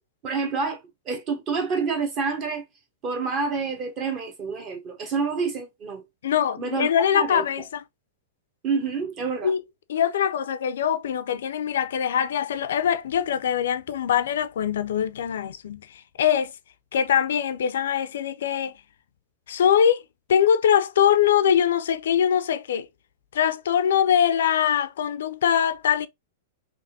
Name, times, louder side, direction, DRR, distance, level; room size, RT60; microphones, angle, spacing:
voice 1, 0.2-0.8 1.1-2.6 3.0-6.0 6.6-6.9 7.1-7.5 8.6-9.5, right 5 dB, 30° right, 0.9 m, -28 dB
voice 2, 6.2-7.8 9.4-9.6 9.9-15.9 16.2-16.5 16.9-18.7 19.5-20.0 20.3-22.9 23.3-26.1, left 9 dB, 80° left, 0.3 m, -22 dB
3.5 x 2.5 x 2.7 m
hypercardioid pair, 145°, 0 cm